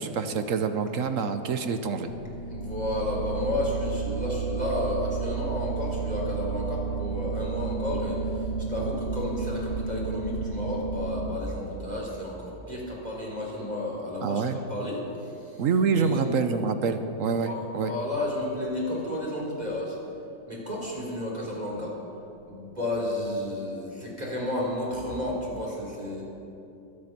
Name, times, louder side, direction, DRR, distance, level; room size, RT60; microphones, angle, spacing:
voice 1, 0.0-2.1 14.2-14.6 15.6-17.9, right 5 dB, 60° right, 9 dB, 1.0 m, -26 dB
sound 1, 2.1-11.3, right 5 dB, 85° left, 2.0 m, -32 dB
voice 2, 2.5-14.4 14.7-15.6 15.9-16.4 17.4-20.0 20.5-22.0 22.5-26.2, left 1 dB, 25° right, -3 dB, 3.6 m, -32 dB
22.5 x 8.8 x 5.9 m, 2.8 s
omnidirectional pair, 1.9 m